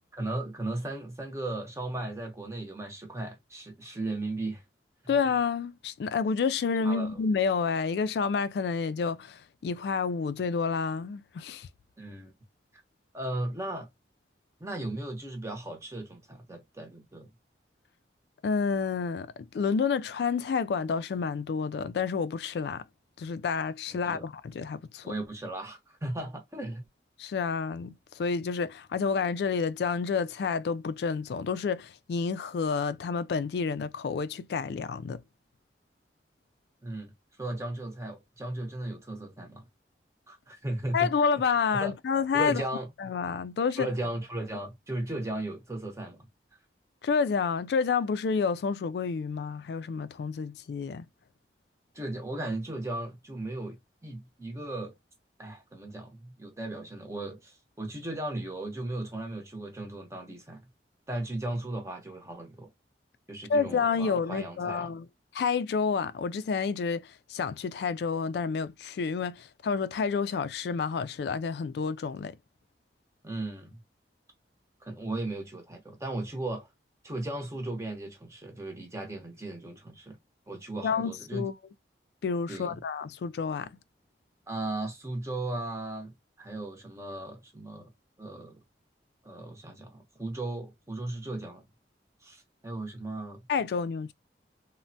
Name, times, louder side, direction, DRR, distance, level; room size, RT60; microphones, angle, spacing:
voice 1, 0.1-4.6 5.0-5.1 6.8-7.2 12.0-12.3 13.1-13.9 14.6-17.3 24.1-24.3 25.0-26.8 36.8-37.1 37.4-39.6 40.3-41.1 41.8-41.9 42.3-42.9 43.8-46.2 51.9-55.0 55.4-60.6 61.1-62.7 63.3-64.9 73.2-73.8 74.8-76.7 77.0-80.2 80.5-81.5 82.5-82.8 84.5-87.9 88.2-88.6 89.2-91.6 92.2-93.4, right 2 dB, 15° right, 0.7 m, -36 dB
voice 2, 5.1-11.7 18.4-19.3 19.5-22.8 23.2-25.1 27.2-35.2 40.9-42.6 43.0-43.9 47.0-51.0 63.5-65.1 65.3-72.4 80.8-81.5 82.2-83.7 93.5-94.1, left 5 dB, 65° left, 0.3 m, -29 dB
3.2 x 2.1 x 2.6 m
head